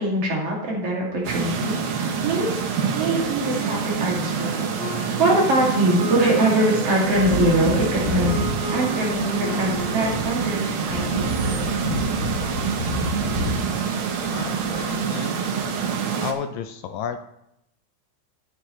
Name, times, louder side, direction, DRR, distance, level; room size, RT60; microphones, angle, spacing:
voice 1, 0.0-1.7 2.2-2.6 2.9-4.7 5.2-8.3 8.7-11.7, right 1 dB, 50° right, -3 dB, 3.3 m, -23 dB
sound 1, 1.2-16.3, right 6 dB, 75° right, 1.2 m, -26 dB
sound 2, 3.0-12.2, left 1 dB, 30° right, 1.2 m, -36 dB
Wind / Thunder, 7.0-15.3 15.6-15.7, left 1 dB, 25° left, 3.6 m, -29 dB
voice 2, 14.3-15.4 16.2-17.2, left 8 dB, 80° left, 8 dB, 1.8 m, -32 dB
13.5 x 8.2 x 3.1 m, 0.80 s
omnidirectional pair, 3.5 m